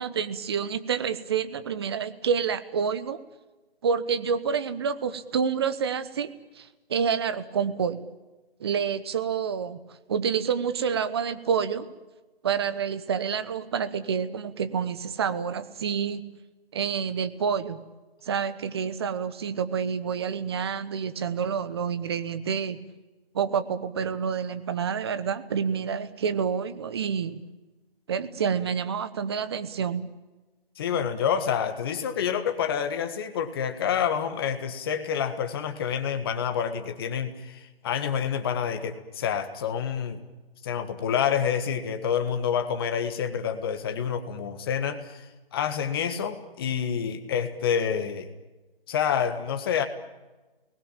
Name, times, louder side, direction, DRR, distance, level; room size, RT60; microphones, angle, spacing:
voice 1, 0.0-3.2 3.8-6.3 6.6-8.1 8.6-11.9 12.4-16.2 16.7-17.8 18.2-22.8 23.3-27.4 28.1-30.1, right 6 dB, 25° right, 13 dB, 1.0 m, -28 dB
voice 2, 30.8-40.2 40.6-45.2 45.5-48.3 48.9-49.9, left 8 dB, 25° left, 8 dB, 1.6 m, -28 dB
29.5 x 20.0 x 8.9 m, 1.2 s
figure-of-eight pair, 155°, 30 cm